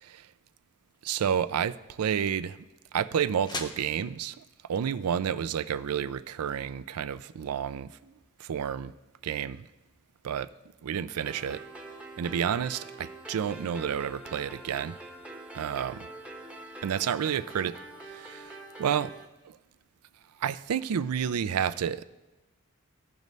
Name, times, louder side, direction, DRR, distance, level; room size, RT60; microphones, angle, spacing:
sound 1, 0.8-6.7, left 2 dB, 20° left, 0.8 m, -46 dB
voice 1, 1.0-2.6 2.9-4.4 4.7-8.1 8.4-8.9 9.2-9.7 10.2-10.5 10.8-11.6 12.2-15.0 15.5-16.1 16.8-17.7 18.1-19.1 19.4-19.6 20.4-22.0, right 8 dB, 85° right, 15 dB, 0.4 m, -30 dB
sound 2, 11.3-19.3, right 2 dB, 5° right, 0.9 m, -45 dB
15.5 x 5.3 x 3.1 m, 1.1 s
head